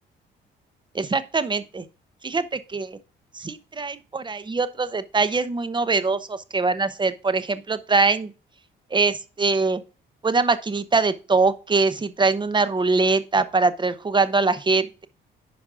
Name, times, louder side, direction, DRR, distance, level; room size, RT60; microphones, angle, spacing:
voice 1, 0.9-1.8 2.2-3.0 3.3-8.3 8.9-9.8 10.2-15.1, right 3 dB, 25° right, 0.9 m, -23 dB
9.9 x 5.3 x 3.7 m
cardioid pair, 90°, 20 cm